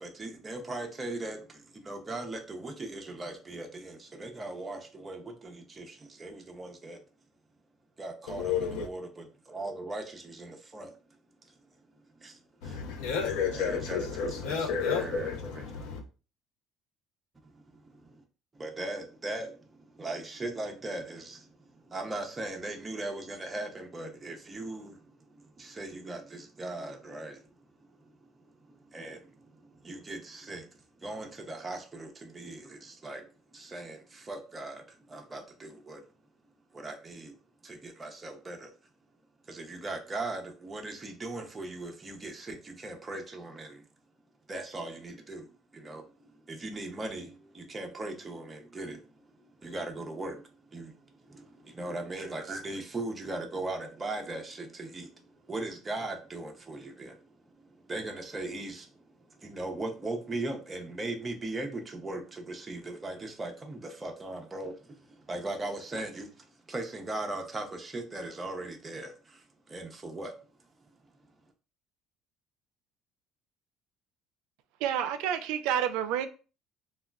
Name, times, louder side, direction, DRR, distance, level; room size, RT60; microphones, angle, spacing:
voice 1, 0.0-7.0 8.0-11.0 12.2-12.8 13.5-14.7 15.0-16.1 17.4-18.2 18.5-27.4 27.9-28.1 28.7-30.7 31.0-36.0 36.7-37.4 37.6-38.7 39.5-43.8 44.5-51.5 51.7-57.3 57.6-70.3, right 2 dB, 15° right, 0.5 m, -39 dB
voice 2, 8.3-8.9 12.6-16.0, left 6 dB, 85° left, 0.5 m, -31 dB
voice 3, 74.8-76.3, right 9 dB, 85° right, 0.3 m, -29 dB
3.4 x 2.2 x 2.2 m
cardioid pair, 160°, 0 cm